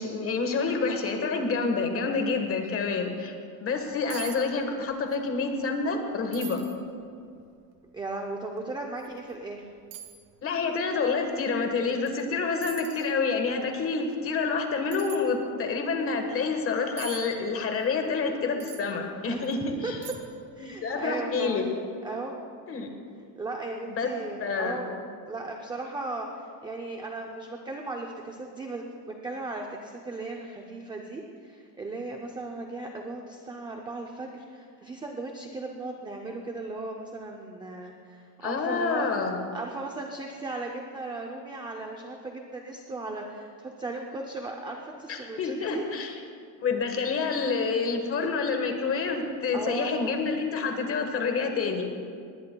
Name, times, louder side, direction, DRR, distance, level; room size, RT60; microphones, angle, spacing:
voice 1, 0.0-6.6 10.4-20.0 20.6-21.7 22.7-22.9 24.0-24.1 24.4-24.8 38.4-39.4 45.1-46.1 46.6-51.8, left 4 dB, 30° left, 4 dB, 1.3 m, -28 dB
sound 1, 3.7-3.8 4.1-4.4 4.7-5.2 5.6-5.7 6.3-6.8 7.4-7.5 9.0-9.1 9.9-10.2 12.1-12.2 12.6-13.1 14.9-15.2 17.0-17.2 18.6-18.9 19.4-19.5 20.0-20.4 20.7-20.8, right 12 dB, 85° right, 1.3 m, -42 dB
voice 2, 7.9-9.6 19.3-19.4 19.8-20.0 20.6-21.7 22.0-22.4 23.4-39.1 39.5-45.8 49.5-50.2, right 2 dB, 10° right, 1 dB, 0.4 m, -37 dB
19.5 x 18.0 x 2.2 m, 2.3 s
cardioid pair, 170°, 47 cm